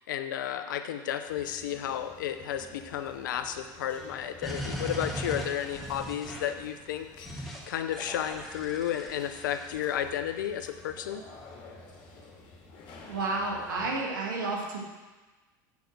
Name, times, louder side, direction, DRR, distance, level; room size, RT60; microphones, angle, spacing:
voice 1, 0.0-11.2, left 10 dB, 85° left, 9 dB, 0.7 m, -33 dB
sound 1, 1.2-13.9, left 3 dB, 50° left, 2.2 m, -51 dB
sound 2, 4.4-6.6 7.3-7.6 7.9-9.8, equal, ahead, 2.5 m, -38 dB
voice 2, 13.1-14.9, right 3 dB, 90° right, -1 dB, 1.8 m, -31 dB
8.4 x 4.7 x 6.3 m, 1.2 s
hypercardioid pair, 95°, 10 cm